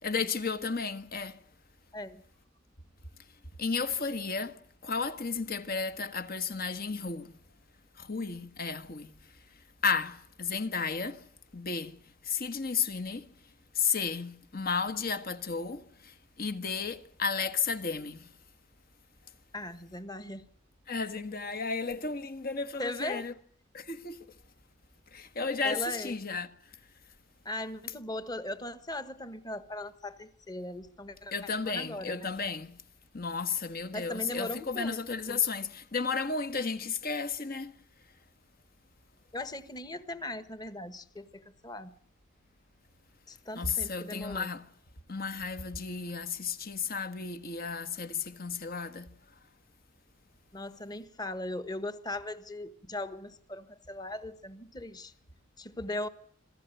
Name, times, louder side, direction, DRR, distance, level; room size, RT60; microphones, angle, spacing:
voice 1, 0.0-1.4 3.6-7.4 8.0-9.1 9.8-11.2 11.5-12.0 12.2-13.2 13.7-18.3 20.9-23.3 23.7-24.2 25.1-26.5 31.3-32.8 33.1-37.7 43.5-44.6 45.1-49.1, left 5 dB, 50° left, 1.5 m, -33 dB
voice 2, 19.5-20.5 22.8-23.2 25.6-26.2 27.4-32.3 33.9-35.0 35.3-35.4 39.3-42.0 43.3-44.5 50.5-55.1 55.6-56.1, left 1 dB, 20° left, 1.4 m, -39 dB
26.5 x 16.0 x 9.2 m
head